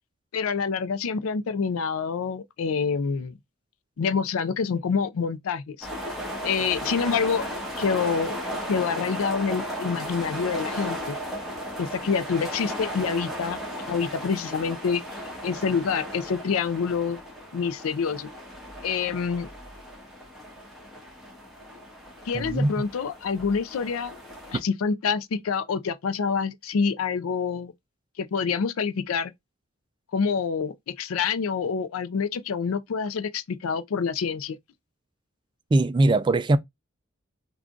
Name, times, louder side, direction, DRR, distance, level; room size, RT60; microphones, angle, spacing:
voice 1, 0.3-3.4 4.0-5.9 6.4-7.4 7.8-8.3 8.6-11.2 11.8-13.6 13.9-15.0 15.4-17.2 17.5-18.3 18.8-19.5 22.3-24.1 24.5-27.7 28.2-29.3 30.1-34.6, left 5 dB, 85° left, 0.4 m, -27 dB
sound 1, 5.8-24.6, equal, ahead, 1.2 m, -36 dB
voice 2, 22.3-22.7 35.7-36.6, right 2 dB, 25° right, 0.3 m, -21 dB
3.7 x 2.3 x 2.3 m
head